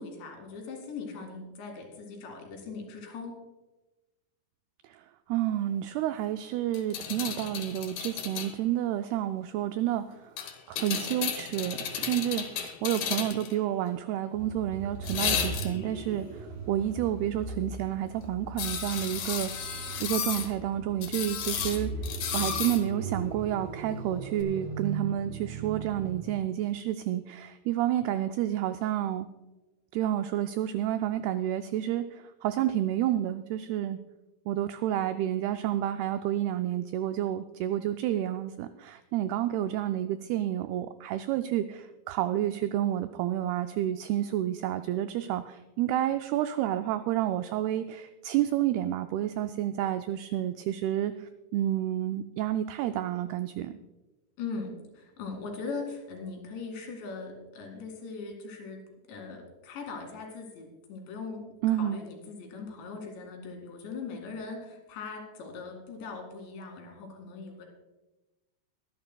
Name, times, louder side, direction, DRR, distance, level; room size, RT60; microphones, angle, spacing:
voice 1, 0.0-3.3 54.4-67.7, left 4 dB, 85° left, 2 dB, 4.6 m, -40 dB
voice 2, 4.8-10.3 10.7-21.9 22.3-29.3 29.9-34.0 34.5-53.8 61.6-62.0, right 12 dB, 90° right, 9 dB, 2.2 m, -30 dB
sound 1, 6.7-8.5 10.4-13.5 15.0-15.9 18.6-20.5 21.0-22.8 24.4-24.5, left 8 dB, 65° left, 2.1 m, -33 dB
sound 2, 14.3-26.5, right 4 dB, 70° right, 3.6 m, -39 dB
23.5 x 11.0 x 2.3 m, 1.1 s
omnidirectional pair, 5.0 m